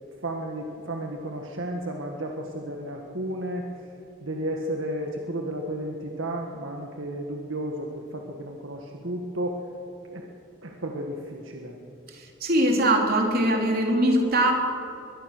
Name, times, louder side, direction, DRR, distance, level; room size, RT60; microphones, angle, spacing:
voice 1, 0.2-3.7 4.2-9.6 10.1-10.2 10.6-11.8, right 1 dB, 70° right, 2 dB, 1.8 m, -33 dB
voice 2, 12.4-14.5, right 1 dB, 45° right, 2 dB, 3.3 m, -21 dB
22.0 x 21.5 x 6.7 m, 2.7 s
head